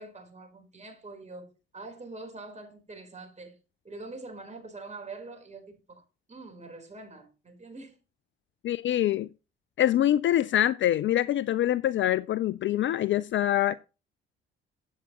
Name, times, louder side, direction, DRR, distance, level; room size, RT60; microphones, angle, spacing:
voice 1, 0.0-3.6 3.8-8.0, right 3 dB, 20° right, 4.3 m, -44 dB
voice 2, 8.6-9.3 9.8-13.7, left 12 dB, 40° left, 0.5 m, -25 dB
14.5 x 8.2 x 3.0 m
figure-of-eight pair, 50°, 31 cm